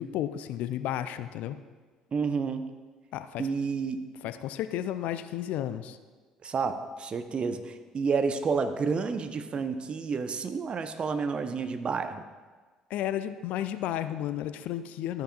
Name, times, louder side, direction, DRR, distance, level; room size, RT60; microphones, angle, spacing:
voice 1, 0.0-1.6 3.1-3.5 4.2-6.0 12.9-15.2, left 11 dB, 60° left, 12 dB, 0.4 m, -32 dB
voice 2, 2.1-2.7 3.4-4.1 6.4-12.2, right 5 dB, 35° right, 9 dB, 0.8 m, -30 dB
13.0 x 10.0 x 2.4 m, 1.4 s
figure-of-eight pair, 50°, 3 cm